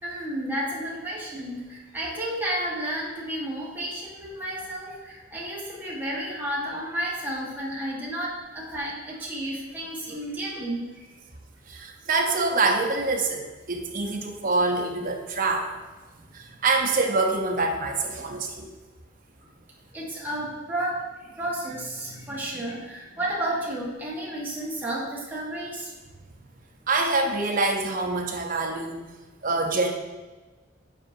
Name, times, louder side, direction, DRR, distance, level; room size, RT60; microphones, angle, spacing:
voice 1, 0.0-10.9 19.4-19.5 19.9-25.9, right 1 dB, 10° right, -6 dB, 1.4 m, -32 dB
voice 2, 11.7-15.7 16.3-18.7 26.9-29.1 29.4-29.9, right 3 dB, 45° right, 2 dB, 0.8 m, -25 dB
8.2 x 5.0 x 2.7 m, 1.2 s
head